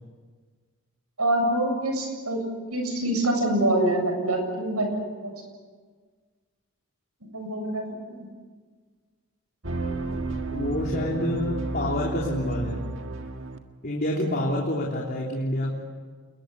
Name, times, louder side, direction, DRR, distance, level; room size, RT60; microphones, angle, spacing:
voice 1, 1.2-2.4 2.7-5.3 7.2-8.3, right 1 dB, 80° right, 4 dB, 7.7 m, -25 dB
sound 1, 9.6-13.6, right 3 dB, 55° right, 1.8 m, -32 dB
voice 2, 10.5-12.8 13.8-15.7, left 1 dB, 40° left, -2 dB, 3.4 m, -27 dB
29.0 x 21.5 x 8.6 m, 1.5 s
head